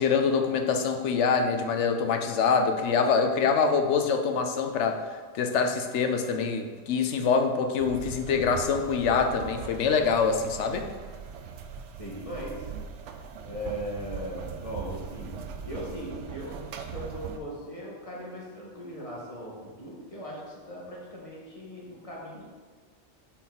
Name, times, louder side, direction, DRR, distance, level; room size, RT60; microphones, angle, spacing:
voice 1, 0.0-10.9, left 5 dB, 80° left, 6 dB, 1.0 m, -25 dB
sound 1, 7.8-17.4, right 6 dB, 85° right, 0.9 m, -40 dB
voice 2, 12.0-12.7 13.4-15.3 15.6-16.6 16.9-22.4, equal, 30° left, -5 dB, 1.8 m, -38 dB
7.1 x 4.6 x 4.1 m, 1.5 s
omnidirectional pair, 1.2 m